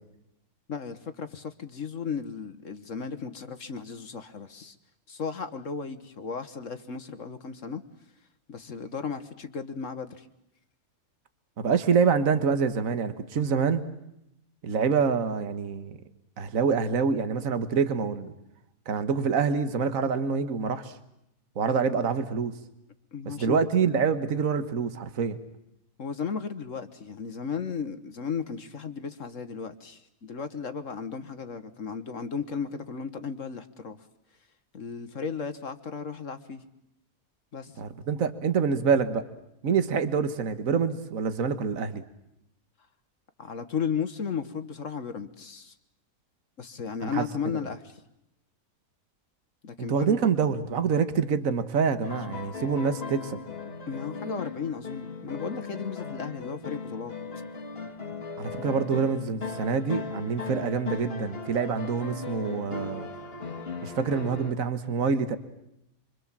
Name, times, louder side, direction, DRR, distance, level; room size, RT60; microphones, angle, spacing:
voice 1, 0.7-4.8 5.1-7.8 8.5-10.3 23.1-23.6 26.0-34.0 34.7-36.6 37.5-37.7 43.4-45.7 46.6-48.0 49.6-50.2 53.9-57.1, left 6 dB, 60° left, 9 dB, 1.6 m, -35 dB
voice 2, 11.6-13.9 14.6-16.0 16.4-18.3 18.9-20.9 21.6-22.5 23.3-25.4 37.8-39.2 39.6-42.0 47.0-47.2 49.9-53.4 58.4-63.1 63.8-65.4, right 6 dB, 65° right, 10 dB, 1.7 m, -26 dB
sound 1, 52.0-64.5, left 5 dB, 40° left, 2.3 m, -37 dB
26.5 x 25.5 x 7.4 m, 0.83 s
omnidirectional pair, 1.5 m